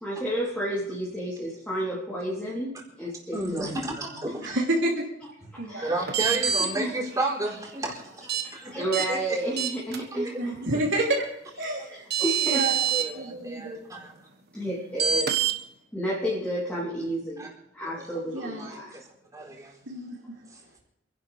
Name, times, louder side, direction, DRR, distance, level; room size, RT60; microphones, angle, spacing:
voice 1, 0.0-3.7 5.5-5.9 6.7-7.3 8.6-10.6 11.6-11.7 12.2-13.1 14.5-15.3 15.9-18.9, right 1 dB, 5° left, -7 dB, 3.3 m, -31 dB
voice 2, 3.3-4.6 5.8-8.1 8.5-9.4 10.1-10.3 12.9-14.2 17.4-17.5 17.9-19.0 19.3-19.8, right 2 dB, 20° right, -2 dB, 3.9 m, -32 dB
voice 3, 4.4-5.1 5.6-6.0 6.5-6.7 10.4-11.2 11.6-12.1 12.4-12.9 13.1-13.8 18.3-18.7 19.9-20.2, right 1 dB, 85° right, -3 dB, 3.0 m, -29 dB
sound 1, 6.1-6.7 8.3-8.4 8.9-9.1 9.6-10.0 11.6-11.7 12.1-13.0 15.0-15.5, right 8 dB, 60° right, 1.4 m, -25 dB
27.5 x 11.0 x 3.4 m, 0.78 s
head